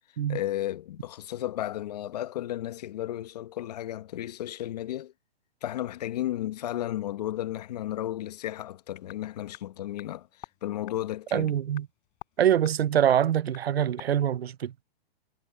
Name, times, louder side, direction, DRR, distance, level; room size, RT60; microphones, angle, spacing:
voice 1, 0.3-5.1 5.6-10.3 10.6-11.5, left 13 dB, 40° left, 1.1 m, -33 dB
sound 1, 8.7-14.1, left 27 dB, 25° left, 4.4 m, -52 dB
voice 2, 11.3-11.9 12.4-14.8, right 10 dB, 80° right, 0.9 m, -24 dB
hypercardioid pair, 165°, 31 cm